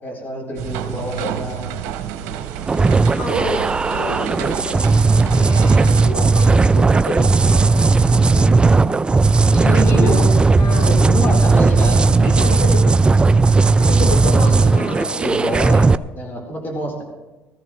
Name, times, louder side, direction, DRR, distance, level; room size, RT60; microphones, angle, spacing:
voice 1, 0.0-1.8 7.7-8.5 9.5-10.4 10.7-12.1 13.9-15.8 16.1-17.0, equal, 40° left, 0 dB, 3.9 m, -27 dB
sound 1, 0.6-6.1, right 9 dB, 90° right, 0.8 m, -29 dB
sound 2, 2.7-16.0, right 3 dB, 20° right, 0.3 m, -15 dB
voice 2, 3.1-7.9 8.2-8.5 9.5-10.2 10.6-11.4 12.2-13.0 13.8-15.6, left 2 dB, 85° left, 0 dB, 2.6 m, -29 dB
18.5 x 14.0 x 3.2 m, 1.2 s
cardioid pair, 100°, 5 cm